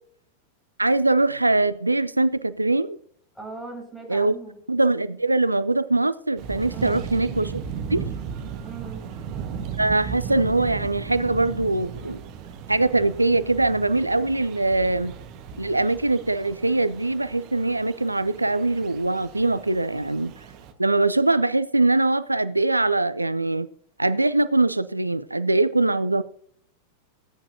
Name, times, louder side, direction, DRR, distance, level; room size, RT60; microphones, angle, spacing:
voice 1, 0.8-3.0 4.1-4.3 4.7-7.6 7.9-8.0 9.8-12.2 12.7-15.1 15.6-20.3 20.8-23.7 24.0-26.2, right 2 dB, 85° right, 0.4 m, -22 dB
voice 2, 3.4-4.6 6.7-7.1 8.6-9.1, right 3 dB, ahead, 5.8 m, -39 dB
sound 1, 6.4-20.7, right 7 dB, 40° right, 1.4 m, -36 dB
18.5 x 8.9 x 2.7 m
figure-of-eight pair, 90°, 0 cm